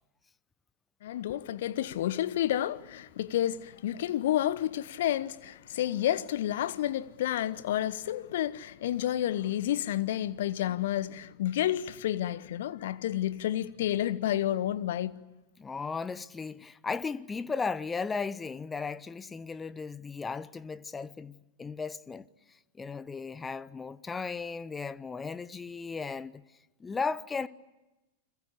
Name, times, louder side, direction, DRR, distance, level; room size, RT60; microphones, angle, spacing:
voice 1, 1.0-15.2, left 12 dB, 55° left, 1.1 m, -30 dB
voice 2, 15.6-22.3 22.8-26.4 26.8-27.5, left 5 dB, 15° left, 0.9 m, -36 dB
29.5 x 22.5 x 8.3 m
figure-of-eight pair, 90°, 0 cm